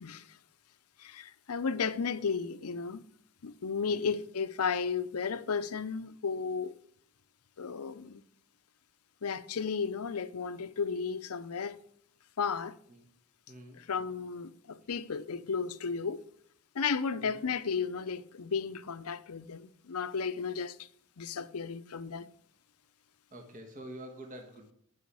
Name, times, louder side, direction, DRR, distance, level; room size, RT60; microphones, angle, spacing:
voice 1, 1.0-3.0 3.4-6.8 7.6-8.2 9.2-11.8 12.4-12.8 13.7-16.2 16.7-20.9 21.2-22.3, left 5 dB, 80° left, 0.6 m, -34 dB
voice 2, 13.5-13.8 17.2-17.4 23.3-24.7, right 1 dB, 35° right, 1.4 m, -46 dB
9.4 x 5.7 x 8.2 m
head